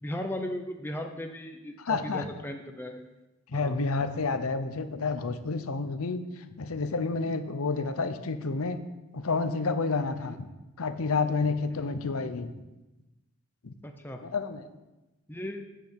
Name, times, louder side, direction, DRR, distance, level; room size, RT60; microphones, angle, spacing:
voice 1, 0.0-3.0 3.5-3.8 10.2-10.4 11.7-11.9 13.8-14.2 15.3-15.7, left 1 dB, 10° left, 4 dB, 0.6 m, -37 dB
voice 2, 1.8-2.3 3.5-8.8 9.1-10.5 10.8-12.5 13.6-13.7 14.2-14.7, left 4 dB, 75° left, 10 dB, 0.7 m, -30 dB
7.5 x 6.8 x 6.5 m, 1.0 s
head